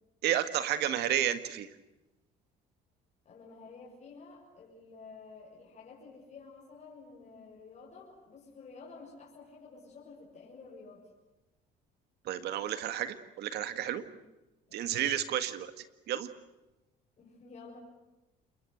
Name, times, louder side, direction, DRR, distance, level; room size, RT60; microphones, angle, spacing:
voice 1, 0.2-1.7 12.3-14.0 14.7-16.3, right 11 dB, 75° right, 10 dB, 1.9 m, -31 dB
voice 2, 3.2-11.1 13.9-14.1 14.7-15.0 17.2-17.8, left 4 dB, 45° left, -4 dB, 6.8 m, -51 dB
28.0 x 22.5 x 8.0 m, 1.0 s
cardioid pair, 110°, 17 cm